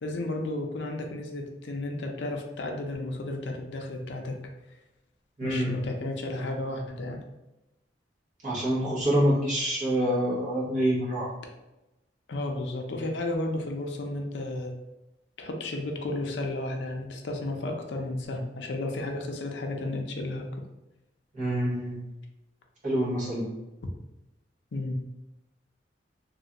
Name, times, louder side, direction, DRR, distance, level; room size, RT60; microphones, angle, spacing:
voice 1, 0.0-4.4 5.4-7.2 12.3-14.7 15.4-20.6 24.7-25.0, left 2 dB, 70° left, 2 dB, 0.5 m, -33 dB
voice 2, 5.4-5.7 8.4-11.3 21.3-22.0 22.8-23.5, equal, 45° right, -7 dB, 1.0 m, -26 dB
3.1 x 2.4 x 2.8 m, 0.98 s
head